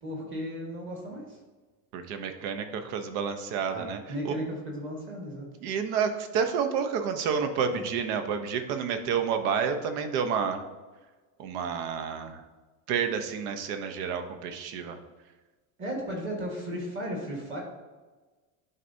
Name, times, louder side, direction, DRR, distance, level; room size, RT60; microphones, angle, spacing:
voice 1, 0.0-1.4 3.7-5.5 7.7-7.8 15.8-17.6, equal, 25° right, -1 dB, 1.5 m, -35 dB
voice 2, 1.9-4.0 4.2-4.3 5.6-10.6 11.4-12.4 12.9-15.0, right 6 dB, 80° right, 7 dB, 0.9 m, -29 dB
11.0 x 4.1 x 2.7 m, 1.3 s
cardioid pair, 175°, 44 cm